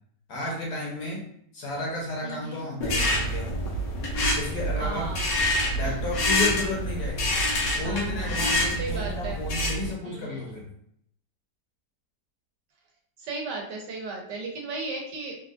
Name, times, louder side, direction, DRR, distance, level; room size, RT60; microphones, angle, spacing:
voice 1, 0.3-1.3 1.5-3.5 4.3-5.1 5.7-7.3 7.8-10.6, left 2 dB, 70° left, -2 dB, 1.4 m, -32 dB
voice 2, 2.2-2.7 4.8-5.4 5.8-6.2 7.8-9.7 10.0-10.4 13.2-15.4, right 3 dB, 75° right, 0 dB, 1.3 m, -36 dB
sound 1, 2.8-9.9, left 1 dB, 90° left, 1.4 m, -27 dB
3.6 x 2.4 x 2.4 m, 0.69 s
omnidirectional pair, 1.9 m